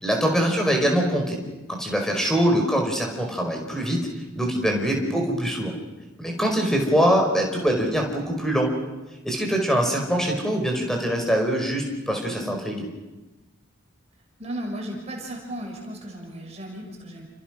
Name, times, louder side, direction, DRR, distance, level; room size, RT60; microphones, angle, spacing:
voice 1, 0.0-1.4 1.7-4.0 4.4-5.7 6.2-8.7 9.2-12.8, equal, ahead, 1 dB, 5.1 m, -23 dB
voice 2, 14.4-17.3, right 1 dB, 30° right, 0 dB, 6.5 m, -35 dB
29.5 x 29.5 x 6.2 m, 1.1 s
head